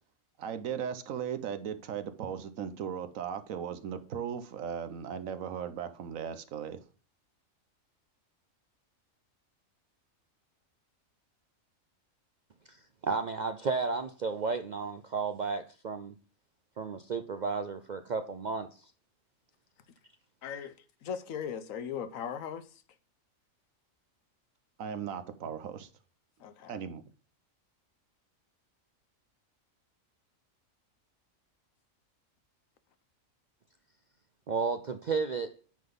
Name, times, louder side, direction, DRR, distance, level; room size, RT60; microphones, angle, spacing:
voice 1, 0.4-6.8 24.8-25.9 26.7-27.0, right 8 dB, 85° right, 1.2 m, -37 dB
voice 2, 12.7-16.1 16.8-18.9 34.5-35.5, right 4 dB, 60° right, 0.4 m, -33 dB
voice 3, 20.4-20.8 21.0-22.8 26.4-26.8, left 7 dB, 80° left, 1.2 m, -38 dB
9.1 x 3.9 x 5.3 m
omnidirectional pair, 1.4 m